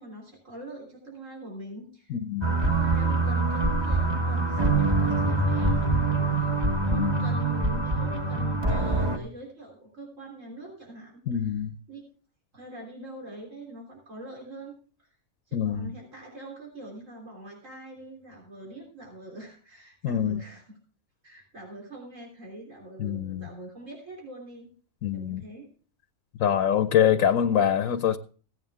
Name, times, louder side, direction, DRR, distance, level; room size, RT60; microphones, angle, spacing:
voice 1, 0.0-11.5 11.9-12.0 12.5-15.1 15.5-20.8 21.2-24.7 25.1-25.7, right 2 dB, 65° right, 3.8 m, -43 dB
voice 2, 2.1-2.6 6.9-7.4 11.3-11.7 15.5-15.9 20.0-20.4 23.0-23.5 25.0-25.4 26.4-28.2, left 9 dB, 80° left, 1.1 m, -25 dB
sound 1, 2.4-9.2, right 3 dB, 20° right, 1.1 m, -24 dB
16.5 x 9.0 x 3.5 m
omnidirectional pair, 1.4 m